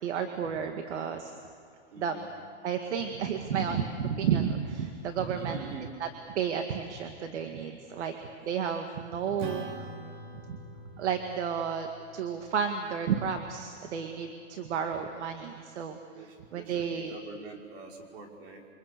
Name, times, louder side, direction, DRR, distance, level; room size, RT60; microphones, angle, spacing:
voice 1, 0.0-1.3 2.0-2.1 2.6-5.6 6.0-6.1 6.4-8.1 8.4-9.7 10.4-10.6 11.0-16.0 16.5-17.1, right 7 dB, 80° right, 5 dB, 2.3 m, -32 dB
voice 2, 1.9-2.3 5.3-5.9 8.0-8.1 16.1-18.7, right 4 dB, 65° right, 1 dB, 5.6 m, -44 dB
Acoustic guitar / Strum, 9.4-14.2, right 1 dB, 45° right, 3.3 m, -45 dB
28.5 x 25.0 x 6.9 m, 2.4 s
supercardioid pair, 150°, 34 cm